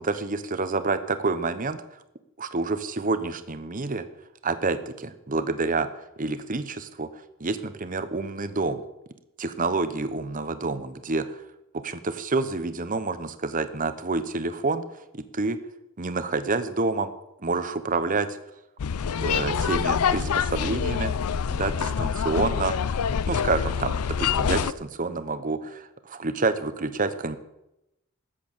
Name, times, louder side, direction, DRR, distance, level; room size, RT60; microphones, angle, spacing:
voice 1, 0.0-1.8 2.4-4.0 4.4-7.1 7.4-8.8 9.4-11.4 11.8-14.8 15.1-15.6 16.0-17.1 17.4-18.4 19.2-21.1 21.5-22.8 23.3-27.4, right 3 dB, 40° right, 11 dB, 0.9 m, -28 dB
sound 1, 18.8-24.7, left 7 dB, 85° left, 0.5 m, -26 dB
13.5 x 8.5 x 7.3 m, 0.89 s
head